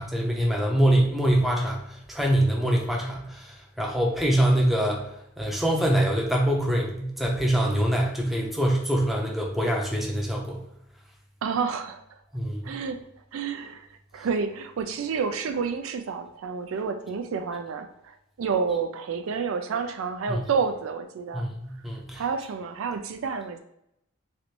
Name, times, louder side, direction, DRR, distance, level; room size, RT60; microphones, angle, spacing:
voice 1, 0.0-5.0 5.4-10.6 12.3-12.6 20.3-20.4 21.3-22.2, right 1 dB, ahead, -1 dB, 0.6 m, -24 dB
voice 2, 11.4-12.0 12.6-13.0 13.3-13.9 14.1-21.4 22.2-23.6, right 5 dB, 80° right, 7 dB, 0.4 m, -29 dB
3.2 x 2.5 x 2.9 m, 0.79 s
head